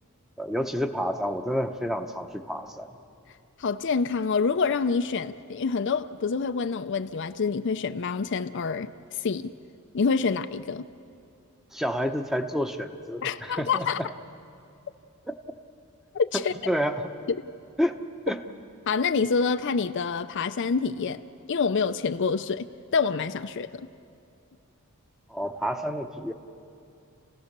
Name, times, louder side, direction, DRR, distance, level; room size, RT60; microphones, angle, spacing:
voice 1, 0.4-2.9 11.7-14.1 15.3-15.4 16.7-17.1 17.8-18.4 25.3-26.3, equal, ahead, 6 dB, 0.9 m, -29 dB
voice 2, 3.6-9.5 9.9-10.8 13.2-14.0 16.1-16.5 17.3-17.4 18.9-21.2 21.5-23.9, left 5 dB, 55° left, 10 dB, 0.5 m, -27 dB
29.5 x 16.5 x 6.7 m, 2.6 s
head